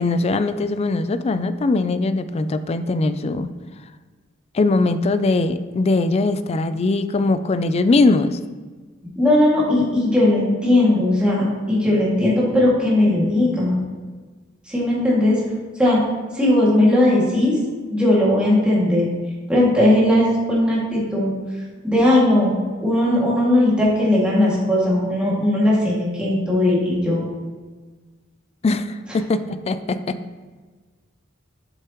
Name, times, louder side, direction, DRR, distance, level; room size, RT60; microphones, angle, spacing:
voice 1, 0.0-3.5 4.5-8.4 28.6-30.2, left 3 dB, 30° left, 12 dB, 0.3 m, -21 dB
voice 2, 9.2-13.8 14.7-15.4 15.8-16.0 16.3-17.6 17.9-19.1 19.5-21.3 21.8-22.5 22.8-27.3, left 1 dB, 5° right, -7 dB, 2.2 m, -18 dB
8.3 x 6.6 x 3.0 m, 1.4 s
head